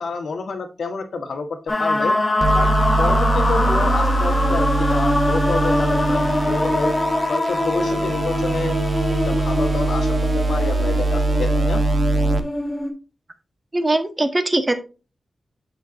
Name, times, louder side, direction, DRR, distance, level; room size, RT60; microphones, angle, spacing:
voice 1, 0.0-2.2 2.5-2.7 3.0-6.9 7.3-8.8 9.3-10.2 10.5-11.8, left 4 dB, 75° left, 5 dB, 1.7 m, -28 dB
sound 1, 1.7-12.9, left 1 dB, 25° left, 3.0 m, -23 dB
sound 2, 2.4-12.4, right 2 dB, 55° right, 1.1 m, -22 dB
voice 2, 13.7-14.7, right 2 dB, 25° right, 9 dB, 1.4 m, -20 dB
8.0 x 7.0 x 2.8 m, 0.32 s
wide cardioid pair, 105°, 0 cm